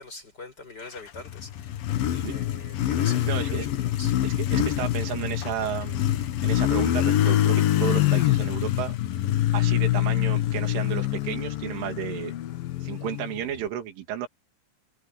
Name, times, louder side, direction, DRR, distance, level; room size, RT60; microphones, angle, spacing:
voice 1, 0.0-1.8 2.2-4.1, left 3 dB, 20° left, 5.8 m, -43 dB
Motorcycle, 1.0-13.6, left 13 dB, 65° left, 2.4 m, -25 dB
voice 2, 2.1-2.4 3.2-3.7 4.2-6.0 6.4-9.0 9.5-12.3 12.8-14.3, right 10 dB, 75° right, 5.4 m, -32 dB
omnidirectional pair, 5.6 m